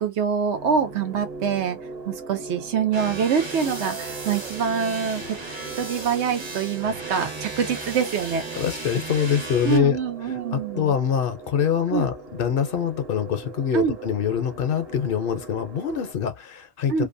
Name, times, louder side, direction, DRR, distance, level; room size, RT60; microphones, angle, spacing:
voice 1, 0.0-1.8 2.1-5.2 5.8-8.4 9.6-10.9 11.9-12.1 13.7-14.0 16.9-17.1, right 7 dB, 85° right, 1.0 m, -25 dB
sound 1, 0.5-16.1, right 4 dB, 65° right, 1.0 m, -40 dB
sound 2, 2.9-9.8, right 2 dB, 30° right, 0.6 m, -35 dB
voice 2, 8.5-10.0 10.5-17.1, left 8 dB, 60° left, 0.7 m, -24 dB
2.6 x 2.1 x 2.5 m
omnidirectional pair, 1.1 m